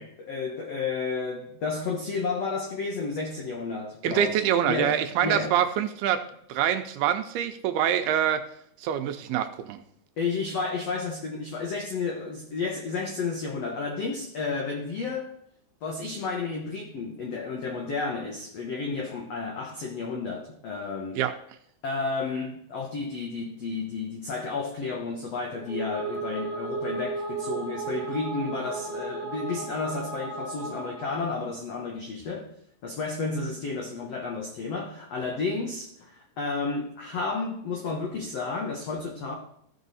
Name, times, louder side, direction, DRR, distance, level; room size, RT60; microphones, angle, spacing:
voice 1, 0.0-5.5 10.2-15.3 15.8-21.2 21.8-32.5 32.8-39.3, left 4 dB, 75° left, 1.4 m, -32 dB
voice 2, 4.0-6.2 6.5-8.4 8.8-9.8 21.2-21.3, right 10 dB, 80° right, 2.5 m, -25 dB
sound 1, 25.5-31.3, right 4 dB, 50° right, 1.2 m, -34 dB
15.0 x 5.5 x 4.1 m
omnidirectional pair, 4.7 m